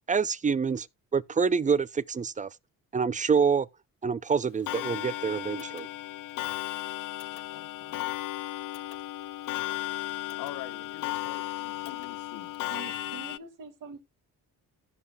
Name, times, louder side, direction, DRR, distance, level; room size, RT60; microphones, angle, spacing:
voice 1, 0.1-0.9 1.1-2.5 2.9-3.7 4.0-5.9, right 5 dB, 25° right, 0.4 m, -26 dB
Clock, 4.7-13.4, left 16 dB, 65° left, 0.5 m, -35 dB
voice 2, 7.5-8.0 10.4-12.7, left 12 dB, 90° left, 1.2 m, -45 dB
voice 3, 12.7-14.0, right 5 dB, 65° right, 2.0 m, -44 dB
16.0 x 6.5 x 2.3 m
cardioid pair, 95°, 34 cm